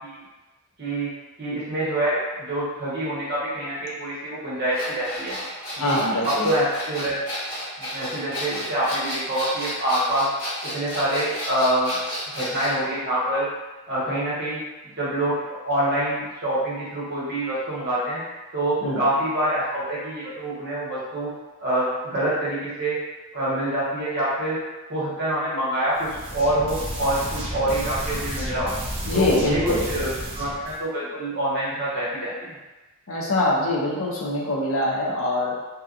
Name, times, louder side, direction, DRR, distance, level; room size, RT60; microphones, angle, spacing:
voice 1, 0.8-1.1 1.4-5.4 5.8-6.0 6.2-7.2 7.8-10.3 10.6-12.0 12.3-13.5 13.9-14.6 15.0-18.2 18.5-21.3 21.6-23.0 23.3-24.6 24.9-28.7 29.1-32.5, right 1 dB, 50° right, -7 dB, 0.9 m, -26 dB
sound 1, 4.7-12.8, equal, 40° left, 1.5 m, -32 dB
voice 2, 5.8-6.5 18.8-19.0 29.0-29.8 33.1-35.5, left 1 dB, 65° left, -3 dB, 0.6 m, -23 dB
sound 2, 25.9-30.8, right 1 dB, 25° right, 0.5 m, -31 dB
2.7 x 2.4 x 2.5 m, 1.2 s
head